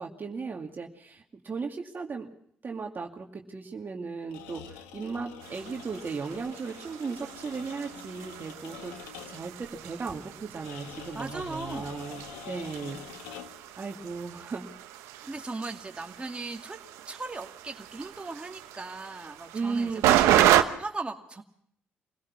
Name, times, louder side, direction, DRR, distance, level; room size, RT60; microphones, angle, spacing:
voice 1, 0.0-2.3 2.6-13.0 13.8-14.7 15.2-15.3 19.5-20.6, right 4 dB, 40° right, 2 dB, 2.3 m, -36 dB
sound 1, 4.2-9.6 10.6-13.7, left 10 dB, 90° left, 1.3 m, -46 dB
sound 2, 5.4-20.6, right 13 dB, 85° right, 1.0 m, -31 dB
voice 2, 11.1-12.2 15.3-16.8 17.1-20.2 20.8-21.4, right 3 dB, 20° right, 2 dB, 2.5 m, -38 dB
26.5 x 17.5 x 6.0 m, 0.65 s
hypercardioid pair, 55°, 5 cm